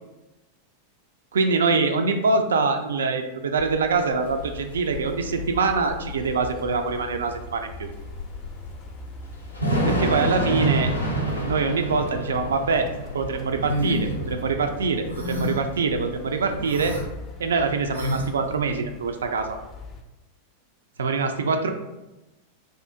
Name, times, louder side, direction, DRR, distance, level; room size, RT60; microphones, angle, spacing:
voice 1, 1.3-7.9 9.8-10.9 11.4-12.9 13.1-17.0 17.4-19.6 21.0-21.7, right 4 dB, 65° right, 6 dB, 0.3 m, -24 dB
Thunder / Rain, 3.6-17.1, right 1 dB, 85° left, 0.5 m, -30 dB
sound 1, 4.2-20.0, left 2 dB, 25° left, 0.4 m, -42 dB
sound 2, 13.7-14.0 15.1-15.7 16.6-17.0 17.9-18.3, left 1 dB, 85° right, 0.7 m, -28 dB
2.7 x 2.4 x 3.3 m, 1.0 s
figure-of-eight pair, 90°, 0 cm